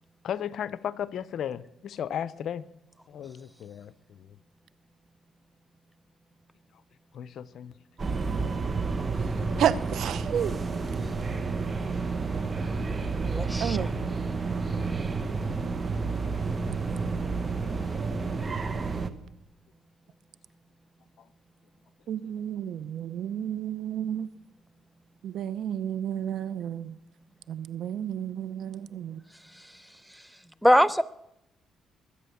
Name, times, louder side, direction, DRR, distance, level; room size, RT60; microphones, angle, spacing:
voice 1, 0.2-2.6 3.1-4.3 7.1-7.7, left 9 dB, 65° left, 17 dB, 0.7 m, -35 dB
sound 1, 8.0-19.1, right 4 dB, 35° right, 1.3 m, -30 dB
voice 2, 9.6-10.6 13.6-13.9 22.1-24.3 25.2-27.0 27.5-29.2, right 9 dB, 70° right, 17 dB, 0.7 m, -31 dB
voice 3, 13.3-13.9 30.6-31.0, equal, 5° right, 16 dB, 0.8 m, -22 dB
22.0 x 8.6 x 7.0 m, 0.83 s
cardioid pair, 80°, 0 cm